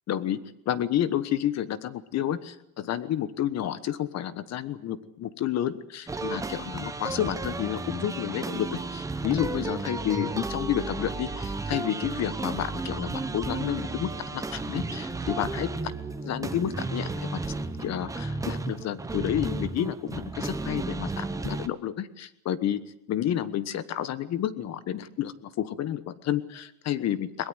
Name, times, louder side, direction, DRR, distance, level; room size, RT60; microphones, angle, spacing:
voice 1, 0.1-15.9 16.2-17.4 17.8-22.8 23.1-27.5, left 11 dB, 35° left, 15 dB, 1.3 m, -30 dB
sound 1, 6.1-21.7, right 3 dB, 5° right, 0.9 m, -33 dB
22.0 x 21.5 x 8.1 m, 0.79 s
cardioid pair, 145°, 45 cm